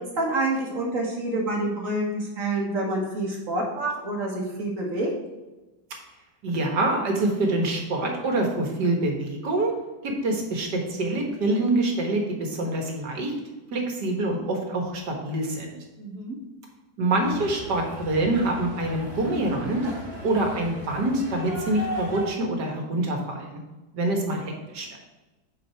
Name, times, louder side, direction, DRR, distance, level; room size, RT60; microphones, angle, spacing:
voice 1, 0.2-5.1 16.0-16.4, right 2 dB, 50° right, -1 dB, 2.0 m, -27 dB
voice 2, 6.4-9.7 10.0-13.4 13.7-15.8 17.0-19.9 20.2-23.6 23.9-24.9, right 2 dB, 75° right, 2 dB, 2.0 m, -25 dB
sound 1, 17.2-22.3, equal, 30° right, 1.7 m, -37 dB
8.4 x 5.5 x 4.5 m, 1.1 s
omnidirectional pair, 1.8 m